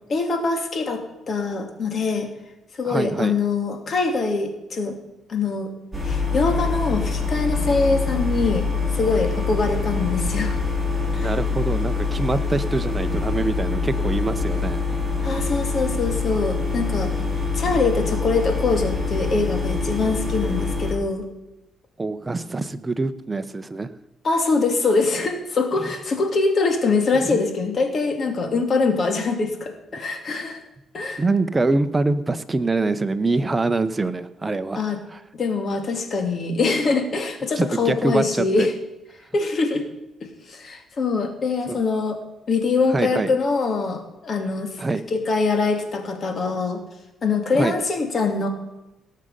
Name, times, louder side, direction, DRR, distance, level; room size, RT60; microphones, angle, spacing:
voice 1, 0.1-2.3 2.8-5.0 5.3-5.7 6.0-8.6 8.9-10.6 11.1-11.3 15.2-17.2 17.5-21.3 24.2-30.6 30.9-31.2 34.8-35.0 35.3-38.7 39.3-39.8 40.2-42.2 42.5-44.7 45.1-46.8 47.2-48.5, left 4 dB, 50° left, 5 dB, 2.4 m, -23 dB
voice 2, 2.8-3.3 11.2-14.8 22.0-23.9 27.3-27.4 31.2-34.8 35.1-35.2 37.6-38.7 41.7-41.8 42.9-43.3 44.8-45.0 47.5-47.7, right 3 dB, 20° right, 11 dB, 0.9 m, -24 dB
sound 1, 5.9-20.9, left 4 dB, ahead, 5.7 m, -25 dB
18.0 x 6.6 x 5.6 m, 0.96 s
cardioid pair, 90°, 0 cm